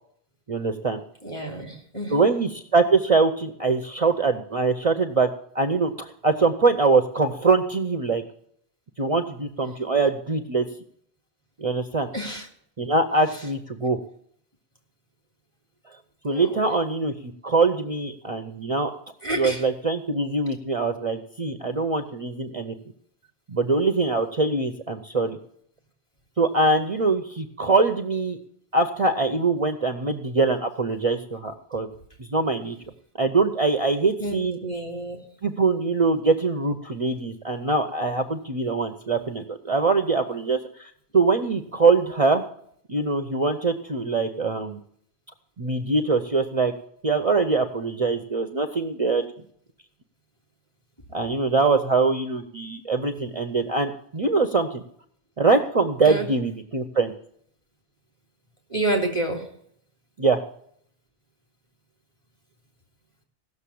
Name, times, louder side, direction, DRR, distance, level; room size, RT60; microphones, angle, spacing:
voice 1, 0.5-1.0 2.1-5.3 5.5-8.2 9.0-10.7 11.6-12.1 12.8-14.0 16.2-18.9 19.3-22.7 23.5-25.4 26.4-28.4 28.7-31.9 32.2-32.8 33.2-34.6 35.4-42.4 42.9-44.8 45.6-46.7 47.0-49.2 51.1-54.8 55.4-57.1 60.2-60.4, right 3 dB, 35° right, 7 dB, 0.8 m, -23 dB
voice 2, 1.2-2.3 12.1-12.5 16.3-16.6 19.2-19.6 34.2-35.2 56.0-56.3 58.7-59.5, right 2 dB, 30° left, 1 dB, 3.3 m, -29 dB
17.0 x 6.8 x 8.5 m, 0.66 s
omnidirectional pair, 1.1 m